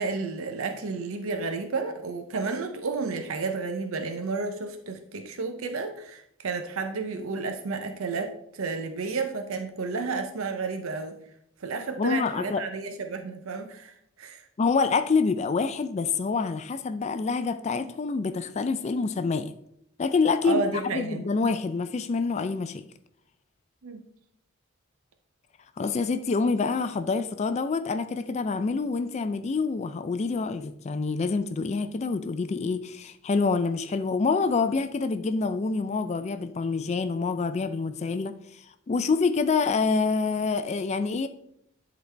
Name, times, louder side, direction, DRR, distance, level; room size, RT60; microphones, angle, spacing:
voice 1, 0.0-11.2 11.6-14.4 20.4-21.2 23.8-24.0, right 4 dB, 70° right, 7 dB, 0.6 m, -31 dB
voice 2, 12.0-12.6 14.6-19.5 20.0-22.8 25.8-41.3, left 4 dB, 30° left, 10 dB, 0.3 m, -27 dB
11.0 x 3.9 x 3.3 m, 0.75 s
head